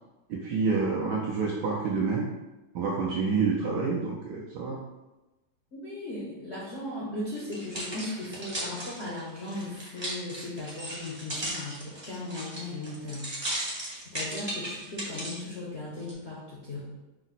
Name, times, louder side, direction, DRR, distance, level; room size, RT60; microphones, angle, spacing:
voice 1, 0.3-2.3 2.7-4.8, right 4 dB, 75° right, -2 dB, 1.0 m, -28 dB
voice 2, 5.7-13.3 13.9-16.9, left 2 dB, 65° left, -6 dB, 0.7 m, -37 dB
sound 1, 7.4-15.4 16.0-16.1, right 1 dB, 25° right, 0.5 m, -36 dB
5.2 x 2.1 x 4.0 m, 1.1 s
omnidirectional pair, 2.3 m